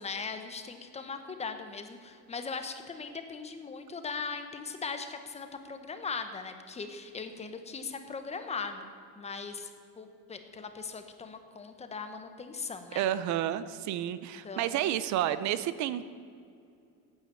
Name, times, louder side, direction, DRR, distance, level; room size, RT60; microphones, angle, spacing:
voice 1, 0.0-8.9 9.2-9.7 10.0-13.0 14.4-14.8, left 5 dB, 20° left, 8 dB, 0.9 m, -39 dB
voice 2, 13.0-16.1, right 12 dB, 55° right, 14 dB, 0.6 m, -30 dB
13.0 x 9.0 x 8.4 m, 2.5 s
cardioid pair, 165°, 34 cm